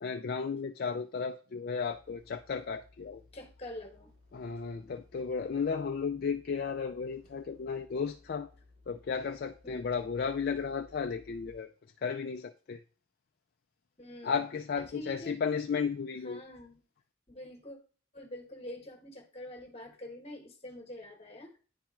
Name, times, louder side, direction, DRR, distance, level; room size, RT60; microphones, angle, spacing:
voice 1, 0.0-3.2 4.3-8.5 8.9-11.7 12.0-12.8 14.2-16.4, left 5 dB, 50° left, 0.3 m, -34 dB
sound 1, 1.8-11.6, left 2 dB, 80° right, 2.2 m, -60 dB
voice 2, 3.3-4.1 9.6-9.9 14.0-14.5 14.8-15.3 16.2-16.8 17.3-17.8 18.1-21.5, left 1 dB, 30° left, 1.2 m, -46 dB
10.0 x 4.3 x 2.4 m
head